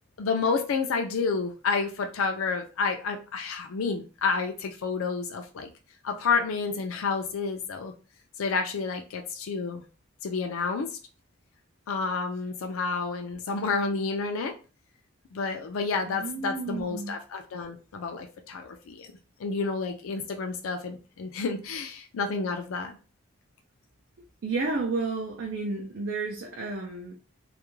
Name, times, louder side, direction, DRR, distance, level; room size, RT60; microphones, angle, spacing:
voice 1, 0.2-5.7 6.0-7.9 8.4-9.8 10.2-11.0 11.9-14.5 15.3-19.1 19.4-23.0, left 4 dB, 75° left, 0.4 m, -30 dB
voice 2, 16.1-17.1 24.4-27.1, right 3 dB, 55° right, 0.4 m, -31 dB
2.3 x 2.1 x 3.0 m
head